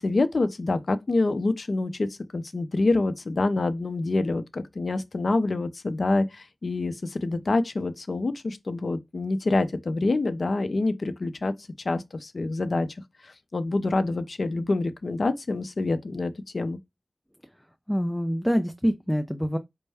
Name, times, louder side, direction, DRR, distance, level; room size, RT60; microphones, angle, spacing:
voice 1, 0.0-11.5 11.8-12.9 13.2-16.8, left 2 dB, 70° left, 0.6 m, -26 dB
voice 2, 17.9-19.6, equal, 5° left, 0.5 m, -25 dB
5.2 x 2.2 x 3.4 m
wide cardioid pair, 50°, 0 cm